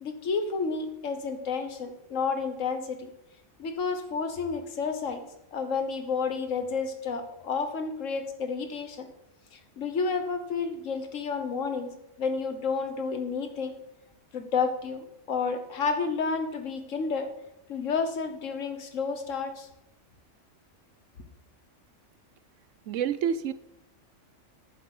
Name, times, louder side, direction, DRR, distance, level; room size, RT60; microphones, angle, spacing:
voice 1, 0.0-3.1 3.6-9.1 9.5-11.9 12.2-13.8 14.3-17.3 17.7-19.7, left 5 dB, 85° left, 8 dB, 1.6 m, -31 dB
voice 2, 22.9-23.5, right 8 dB, 80° right, 15 dB, 1.0 m, -28 dB
9.2 x 7.5 x 6.8 m, 0.83 s
omnidirectional pair, 1.3 m